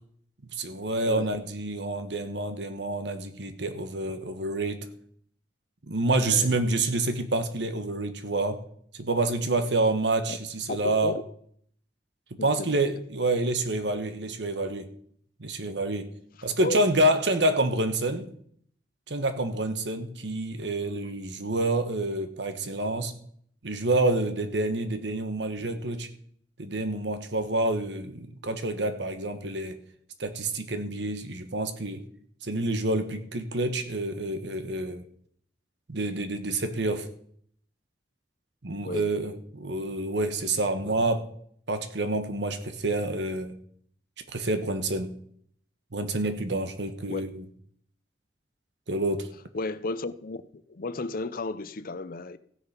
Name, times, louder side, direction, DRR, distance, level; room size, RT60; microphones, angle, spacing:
voice 1, 0.5-4.9 5.8-8.6 8.9-11.2 12.3-14.9 15.4-16.1 16.4-18.3 19.1-23.1 23.6-26.1 26.6-29.8 30.2-32.0 32.4-35.0 35.9-37.1 38.6-41.3 41.7-43.6 44.3-45.1 45.9-47.4 48.9-49.3, right 2 dB, 75° right, 1.3 m, -28 dB
voice 2, 10.7-11.1 12.4-12.9 16.6-16.8 38.8-39.1 47.1-47.2 49.5-50.4 50.7-52.4, left 3 dB, 55° left, 0.6 m, -33 dB
15.5 x 6.5 x 5.9 m
head